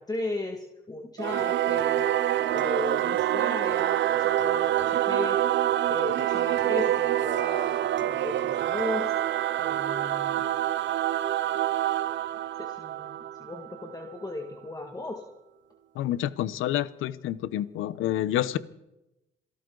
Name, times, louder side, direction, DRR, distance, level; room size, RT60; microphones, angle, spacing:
voice 1, 0.0-2.1 2.5-5.4 5.9-9.2 9.6-10.4 11.5-11.6 12.6-15.2, left 2 dB, 20° left, 2 dB, 2.0 m, -36 dB
Singing / Musical instrument, 1.2-14.1, right 12 dB, 65° right, 0.7 m, -26 dB
voice 2, 15.9-18.6, left 12 dB, 85° left, 17 dB, 0.8 m, -28 dB
27.5 x 13.0 x 3.9 m, 0.93 s
cardioid pair, 90°, 20 cm